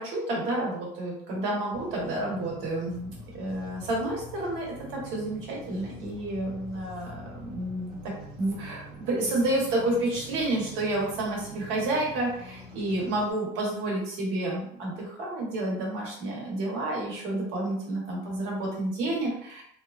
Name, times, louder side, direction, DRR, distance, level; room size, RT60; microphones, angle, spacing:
voice 1, 0.0-4.7 4.9-8.1 8.4-19.6, right 1 dB, 75° right, -3 dB, 1.2 m, -30 dB
sound 1, 1.7-13.3, left 1 dB, 25° right, 1.3 m, -45 dB
2.9 x 2.3 x 2.4 m, 0.71 s
cardioid pair, 155°, 20 cm